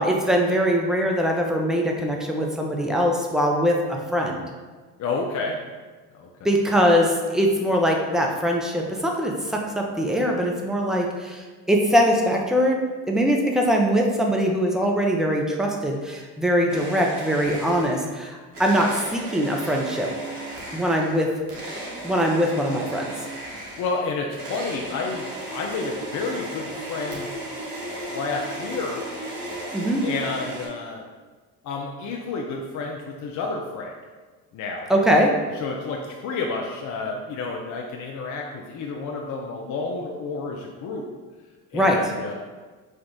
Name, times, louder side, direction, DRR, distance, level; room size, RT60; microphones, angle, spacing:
voice 1, 0.0-4.4 6.4-12.8 13.1-20.1 20.7-21.3 22.0-23.0 29.7-30.0 34.9-35.3 41.7-42.1, equal, ahead, 0 dB, 0.7 m, -22 dB
voice 2, 5.0-5.6 6.1-6.3 23.8-27.3 28.1-29.0 30.0-31.0 31.6-33.9 34.5-34.9 35.5-41.1 41.7-42.3, left 4 dB, 40° left, 0 dB, 0.6 m, -30 dB
sound 1, 16.7-18.1 18.5-30.7, right 1 dB, 90° right, 1.0 m, -35 dB
5.0 x 2.4 x 3.8 m, 1.4 s
hypercardioid pair, 60°, 44 cm